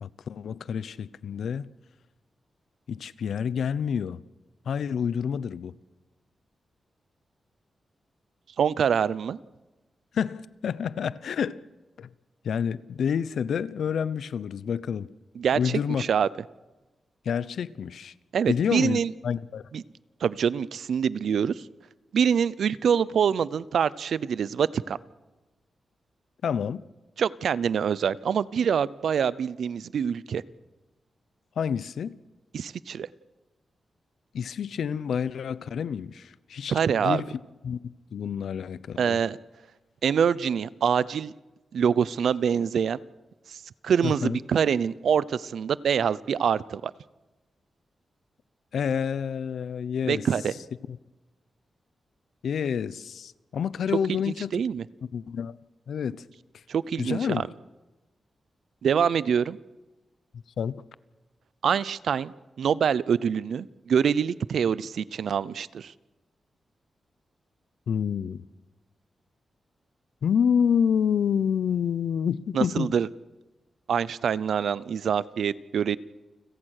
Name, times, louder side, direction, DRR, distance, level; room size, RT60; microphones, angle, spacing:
voice 1, 0.0-1.7 2.9-4.2 4.7-5.7 10.1-11.6 12.0-12.1 12.4-15.1 15.5-16.0 17.3-18.1 18.5-19.6 26.4-26.8 31.6-32.1 34.3-39.2 44.0-44.4 48.7-50.2 50.9-51.0 52.4-54.5 55.0-55.6 55.9-56.2 57.0-57.4 60.6-60.8 67.9-68.4 70.2-72.9, left 7 dB, 80° left, 0.7 m, -28 dB
voice 2, 8.6-9.4 15.4-16.3 18.3-19.1 19.7-19.8 20.2-21.6 22.1-25.0 27.2-30.4 32.5-33.1 36.7-37.2 39.0-39.4 40.0-41.3 41.7-43.0 43.5-46.9 50.1-50.5 54.1-54.8 56.7-57.5 58.8-59.6 61.6-65.9 72.5-73.1 73.9-76.0, right 7 dB, 75° right, 0.6 m, -25 dB
29.5 x 16.5 x 6.6 m
wide cardioid pair, 170°, 0 cm